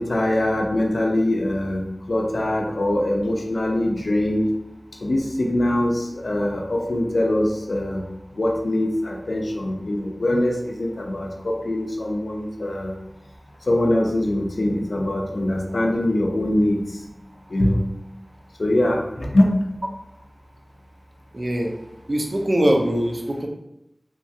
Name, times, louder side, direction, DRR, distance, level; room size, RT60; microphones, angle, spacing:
voice 1, 0.0-4.5 5.0-8.1 8.3-13.0 13.7-16.8 17.5-17.8 18.6-19.5, left 1 dB, 85° left, 1 dB, 0.4 m, -22 dB
voice 2, 21.3-21.7 22.1-23.5, right 1 dB, 55° right, 1 dB, 0.5 m, -22 dB
2.9 x 2.3 x 2.6 m, 0.85 s
wide cardioid pair, 45°, 0 cm